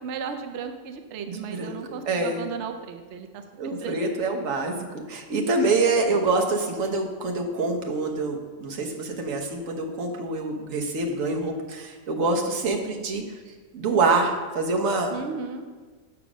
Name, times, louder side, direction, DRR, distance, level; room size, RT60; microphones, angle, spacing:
voice 1, 0.0-4.1 15.1-15.6, right 6 dB, 75° right, 6 dB, 0.6 m, -35 dB
voice 2, 1.3-2.4 3.6-13.4 13.7-15.2, right 3 dB, 55° right, 2 dB, 1.2 m, -26 dB
6.9 x 6.0 x 6.1 m, 1.4 s
omnidirectional pair, 1.9 m